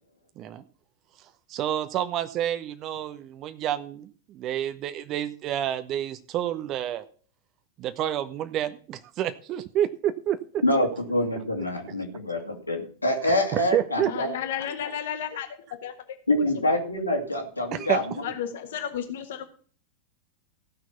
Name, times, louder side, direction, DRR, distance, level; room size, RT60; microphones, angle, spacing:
voice 1, 1.5-7.0 7.8-10.6 13.2-14.1 17.7-18.0, right 11 dB, 35° right, 10 dB, 0.9 m, -29 dB
voice 2, 10.6-14.3 16.3-18.1, left 1 dB, 85° left, 0 dB, 2.5 m, -26 dB
voice 3, 14.1-15.5 15.8-15.9 18.2-19.4, left 9 dB, 55° left, 8 dB, 1.5 m, -32 dB
15.5 x 6.1 x 5.8 m, 0.44 s
figure-of-eight pair, 90°, 0 cm